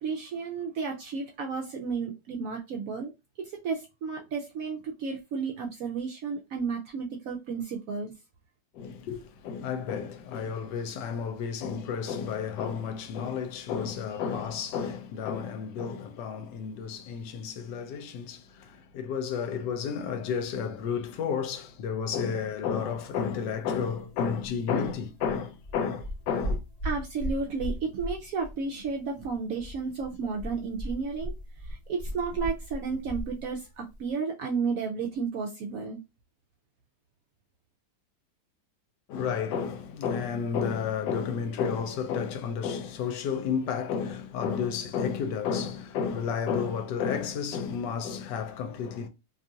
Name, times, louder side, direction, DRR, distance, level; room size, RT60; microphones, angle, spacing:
voice 1, 0.0-3.1 3.4-8.1 26.8-31.3 31.9-36.0, right 5 dB, 70° right, 0.8 m, -32 dB
voice 2, 8.7-26.6 39.1-49.1, left 6 dB, 80° left, 1.2 m, -31 dB
sound 1, 22.9-34.1, equal, 45° left, 0.5 m, -39 dB
2.9 x 2.4 x 2.6 m
omnidirectional pair, 1.9 m